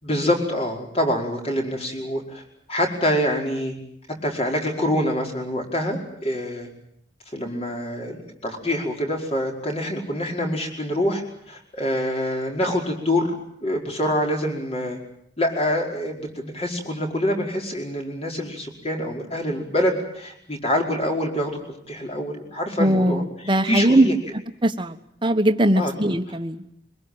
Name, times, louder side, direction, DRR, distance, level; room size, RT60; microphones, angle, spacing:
voice 1, 0.0-2.4 2.7-3.8 4.2-6.7 7.3-13.3 13.6-15.0 15.4-21.6 21.9-23.2 23.7-24.1 25.7-25.9, left 1 dB, 35° left, 1 dB, 5.1 m, -25 dB
voice 2, 22.8-24.1 24.6-26.6, right 1 dB, 30° right, 8 dB, 1.4 m, -20 dB
23.5 x 21.5 x 8.9 m, 0.71 s
head